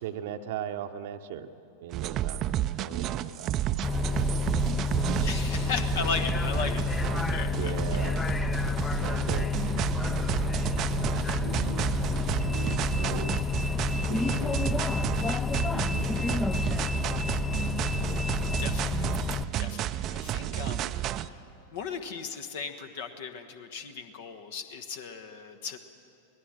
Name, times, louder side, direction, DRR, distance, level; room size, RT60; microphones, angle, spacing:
voice 1, 0.0-1.5 1.8-2.5 2.8-3.5 4.3-4.4 5.1-5.2 7.6-8.2 9.0-9.5 11.4-12.0 12.5-13.4 14.1-14.6 15.7-16.6 20.7-20.9, right 9 dB, 55° right, 7 dB, 0.9 m, -39 dB
sound 1, 1.9-21.3, right 12 dB, 35° right, 0.6 m, -31 dB
Bus, 3.8-19.4, left 5 dB, 10° left, 0.7 m, -30 dB
voice 2, 5.2-6.8 7.3-7.8 18.6-19.1 19.6-21.4 21.7-25.8, left 5 dB, 55° left, 7 dB, 1.2 m, -36 dB
24.0 x 19.0 x 6.5 m, 2.6 s
figure-of-eight pair, 90°, 0 cm